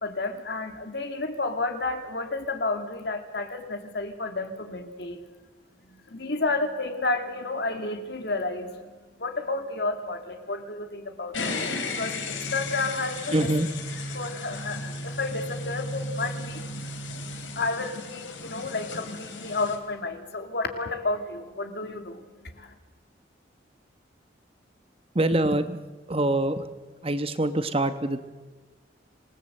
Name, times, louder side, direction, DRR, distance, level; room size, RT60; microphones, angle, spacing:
voice 1, 0.0-5.2 5.9-11.6 11.9-13.5 14.1-16.9 17.6-22.7, left 3 dB, 60° left, 6 dB, 2.3 m, -31 dB
sound 1, 11.3-19.8, left 2 dB, 85° left, 3.6 m, -34 dB
voice 2, 13.3-13.7 25.1-25.8 26.1-26.7 27.0-28.2, right 1 dB, 30° right, 10 dB, 1.1 m, -24 dB
26.5 x 19.5 x 7.8 m, 1.3 s
head